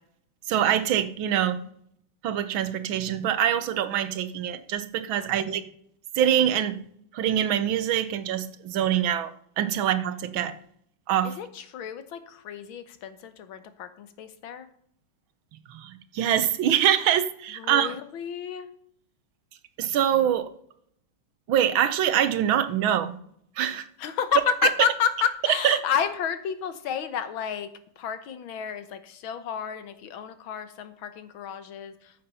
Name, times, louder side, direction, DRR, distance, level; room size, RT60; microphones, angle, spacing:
voice 1, 0.5-1.6 2.2-5.6 6.2-6.8 7.1-9.3 9.6-10.5 11.1-11.3 15.7-17.9 19.8-20.5 21.5-23.2 23.6-23.9 25.6-25.8, right 10 dB, 80° right, 12 dB, 1.7 m, -24 dB
voice 2, 11.2-14.7 17.6-18.7 24.0-27.7 28.0-32.2, left 8 dB, 80° left, 11 dB, 1.8 m, -30 dB
14.0 x 7.3 x 5.6 m, 0.68 s
omnidirectional pair, 2.2 m